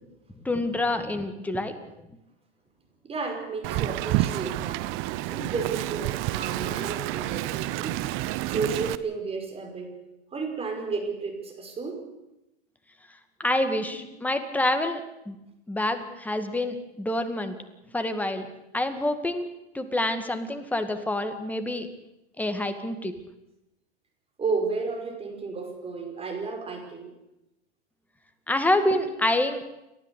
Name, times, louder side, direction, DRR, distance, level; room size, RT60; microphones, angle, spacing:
voice 1, 0.4-1.8 13.4-15.0 15.3-15.4 15.7-17.6 17.9-18.5 18.7-21.9 22.4-23.2 28.5-29.6, left 1 dB, 5° left, 7 dB, 2.0 m, -27 dB
voice 2, 3.0-4.9 5.2-8.0 8.5-9.9 10.3-12.0 13.8-14.1 24.4-27.1 28.9-29.0, right 4 dB, 15° right, 4 dB, 5.2 m, -32 dB
Wind, 3.6-8.9, right 16 dB, 35° right, 0.9 m, -29 dB
30.0 x 12.0 x 8.4 m, 0.91 s
hypercardioid pair, 125°, 33 cm